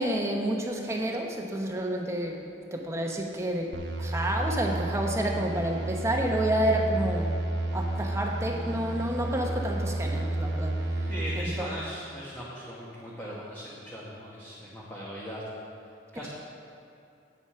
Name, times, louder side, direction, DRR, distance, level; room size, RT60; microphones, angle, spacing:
voice 1, 0.0-2.4 2.7-7.3 7.7-10.8 11.4-11.7, right 1 dB, 15° right, 1 dB, 1.0 m, -29 dB
sound 1, 3.7-11.4, right 1 dB, 80° right, 0.8 m, -31 dB
voice 2, 11.0-15.4 16.1-16.3, equal, 10° left, -7 dB, 1.3 m, -39 dB
8.9 x 8.0 x 5.8 m, 2.7 s
head